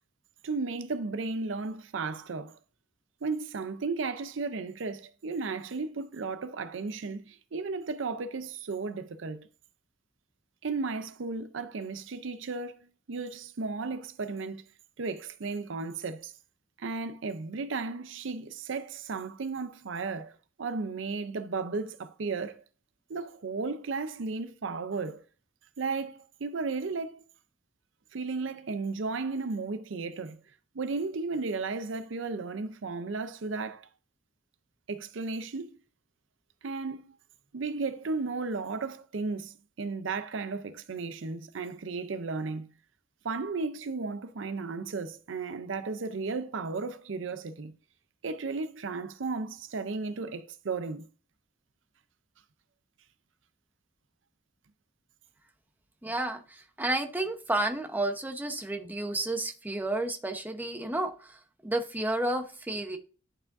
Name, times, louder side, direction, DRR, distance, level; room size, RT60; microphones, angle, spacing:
voice 1, 0.4-2.6 3.2-9.5 10.6-14.6 15.0-16.3 16.8-22.6 23.1-25.2 25.8-27.2 28.1-30.4 30.7-33.9 34.9-35.8 36.6-37.1 37.5-42.7 43.2-47.7 48.2-51.1, right 4 dB, 75° right, 0.6 m, -34 dB
voice 2, 56.0-63.0, right 2 dB, 10° right, 0.8 m, -31 dB
11.0 x 4.9 x 2.6 m
head